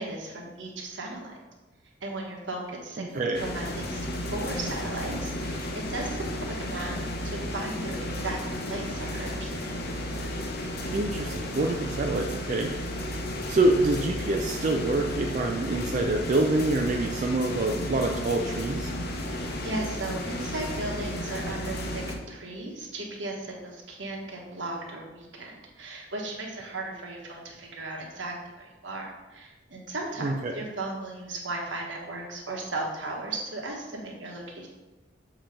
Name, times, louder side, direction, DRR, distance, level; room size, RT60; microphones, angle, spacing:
voice 1, 0.0-1.3 2.0-4.0 4.3-7.0 7.2-8.4 8.7-9.5 19.2-34.7, right 2 dB, 75° right, -1 dB, 1.3 m, -36 dB
voice 2, 3.0-3.4 10.9-12.7 13.5-18.9 30.2-30.6, right 2 dB, 45° right, 2 dB, 0.4 m, -26 dB
sound 1, 3.3-22.2, left 1 dB, 55° left, 0.8 m, -33 dB
7.2 x 2.9 x 5.1 m, 1.2 s
head